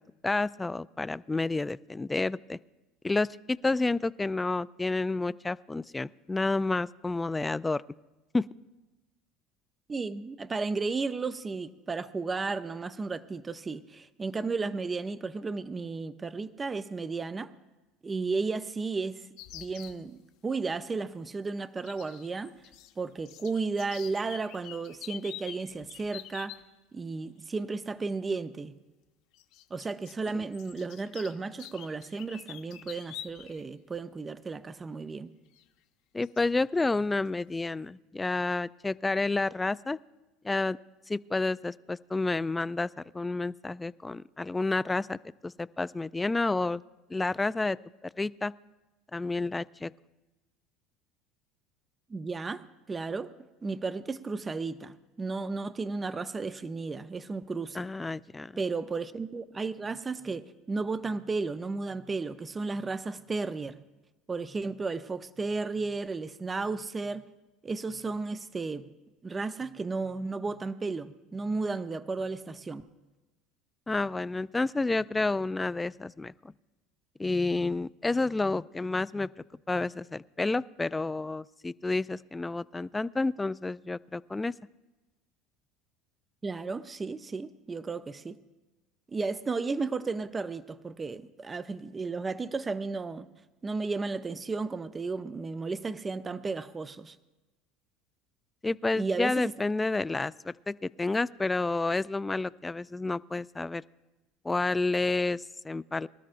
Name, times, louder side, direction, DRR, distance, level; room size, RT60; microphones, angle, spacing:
voice 1, 0.2-2.6 3.0-7.8 8.3-8.5 30.3-30.4 36.1-40.0 40.4-40.8 41.1-45.2 45.4-46.8 47.1-47.8 48.0-48.5 49.1-49.9 57.7-58.5 73.9-76.5 77.2-79.3 79.7-84.5 98.6-103.8 104.4-106.1, left 3 dB, 15° left, 18 dB, 0.3 m, -30 dB
voice 2, 9.9-17.5 18.0-19.3 19.5-22.5 23.0-26.5 26.9-28.7 29.7-35.3 52.1-53.3 53.6-57.8 58.6-63.8 64.3-67.2 67.6-68.9 69.2-72.9 86.4-88.4 89.1-93.3 93.6-97.2 98.9-99.5, right 4 dB, 20° right, 12 dB, 0.6 m, -34 dB
sound 1, 19.4-20.0 21.8-22.9 23.2-26.6 28.0-28.1 29.3-33.6 33.9-34.0 35.5-35.6 36.2-36.4 36.8-37.0, left 13 dB, 70° left, 1.0 m, -46 dB
23.5 x 13.0 x 2.5 m, 1.1 s
supercardioid pair, 105°, 0 cm